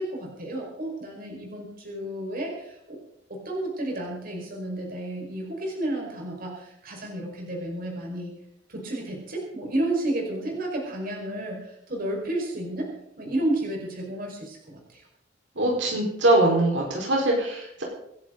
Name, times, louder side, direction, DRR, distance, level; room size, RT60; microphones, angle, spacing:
voice 1, 0.0-3.0 3.3-8.4 8.7-12.9 13.2-15.0, right 1 dB, 50° right, 0 dB, 5.4 m, -31 dB
voice 2, 15.6-17.8, right 1 dB, 80° right, -1 dB, 4.8 m, -22 dB
26.5 x 11.0 x 4.0 m, 0.78 s
head